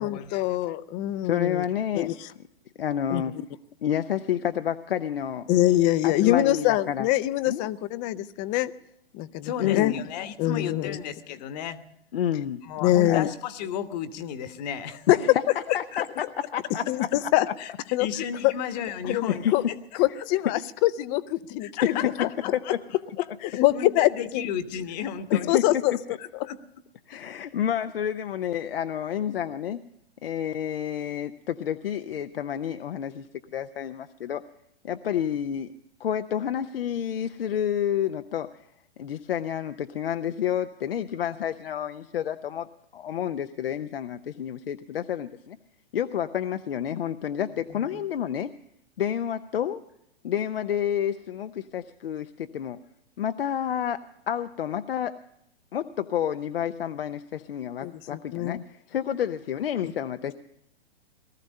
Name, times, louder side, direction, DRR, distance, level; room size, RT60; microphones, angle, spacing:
voice 1, 0.0-1.6 1.9-2.1 3.1-3.2 5.5-8.7 9.1-9.9 10.4-11.0 12.8-13.3 15.1-15.2 16.9-17.5 17.9-18.1 18.4-18.5 19.0-19.2 19.5-19.6 20.0-21.9 22.2-22.3 23.4-24.5 25.5-26.5 57.8-58.6 60.2-60.3, left 15 dB, 25° left, 16 dB, 0.6 m, -24 dB
voice 2, 1.2-2.1 2.8-3.4 3.8-5.5 6.0-7.1 7.5-7.7 9.6-10.0 12.1-12.6 13.0-13.3 15.1-16.3 16.5-17.1 19.3-19.5 21.8-22.0 22.5-22.8 25.3-25.8 27.1-29.8 30.2-33.3 33.5-34.4 34.8-35.7 36.0-38.7 39.0-42.7 42.9-45.6 45.9-48.5 49.0-49.8 50.2-52.8 53.2-55.1 55.7-60.3, left 9 dB, 65° left, 9 dB, 0.8 m, -29 dB
voice 3, 9.4-11.8 12.6-15.1 15.7-16.0 17.6-17.7 18.0-19.8 21.6-22.7 23.2-25.5 26.2-26.6 47.7-47.9, left 8 dB, 40° left, 10 dB, 1.3 m, -34 dB
19.0 x 14.0 x 5.3 m, 0.77 s
hypercardioid pair, 120°, 31 cm